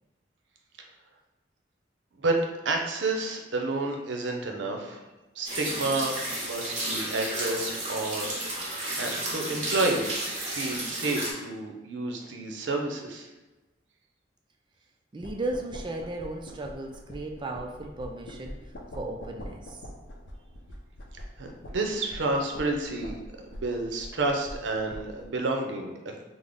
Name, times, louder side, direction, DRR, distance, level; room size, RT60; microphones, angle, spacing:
voice 1, 2.2-5.0 5.4-6.1 6.4-8.3 8.6-13.3 21.4-23.2 23.5-26.2, right 2 dB, 80° right, 2 dB, 0.5 m, -30 dB
Washing Hands, 5.5-11.3, right 1 dB, 40° right, 1.1 m, -32 dB
voice 2, 15.1-19.8, right 2 dB, 25° right, 3 dB, 0.3 m, -36 dB
sound 1, 15.2-25.3, equal, 90° left, 0.5 m, -44 dB
3.7 x 2.0 x 3.4 m, 1.1 s
head